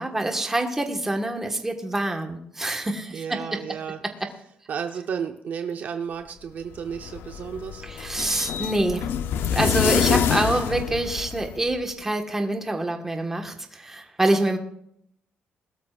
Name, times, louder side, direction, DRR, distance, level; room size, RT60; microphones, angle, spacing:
voice 1, 0.0-3.6 7.8-9.1 9.5-14.6, right 2 dB, 10° right, 4 dB, 1.5 m, -26 dB
voice 2, 3.1-4.0 4.7-7.9 10.1-10.2 10.7-11.0, right 7 dB, 50° right, 6 dB, 0.9 m, -32 dB
sound 1, 6.7-11.8, left 9 dB, 85° left, 0.7 m, -26 dB
21.0 x 13.0 x 2.5 m, 0.70 s
cardioid pair, 175°, 4 cm